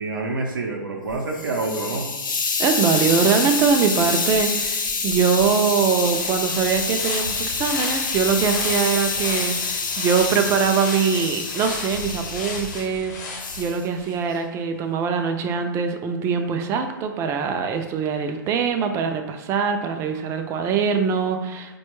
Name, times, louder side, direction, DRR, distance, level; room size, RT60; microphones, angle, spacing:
voice 1, 0.0-2.1, right 3 dB, 85° right, 0 dB, 0.6 m, -27 dB
Hiss, 1.1-12.9 13.4-13.8, left 4 dB, 75° left, 0.7 m, -26 dB
voice 2, 2.6-21.8, right 6 dB, 25° right, 5 dB, 0.4 m, -23 dB
sound 1, 5.0-5.1 5.4-14.2, left 3 dB, 50° left, 0.9 m, -35 dB
4.2 x 2.2 x 3.0 m, 1.2 s
hypercardioid pair, 115°, 11 cm